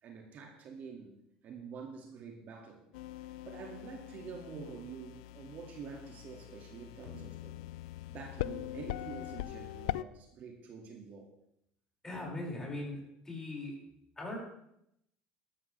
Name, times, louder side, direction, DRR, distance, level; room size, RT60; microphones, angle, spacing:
voice 1, 0.0-1.1 1.4-2.9 3.2-7.6 8.1-11.3, right 5 dB, 50° right, 2 dB, 2.1 m, -47 dB
sound 1, 2.9-10.0, left 16 dB, 85° left, 0.4 m, -42 dB
voice 2, 12.0-13.0 13.2-13.7 14.2-14.4, left 2 dB, 15° left, -3 dB, 5.8 m, -39 dB
13.0 x 13.0 x 3.4 m, 0.77 s
supercardioid pair, 100°, 4 cm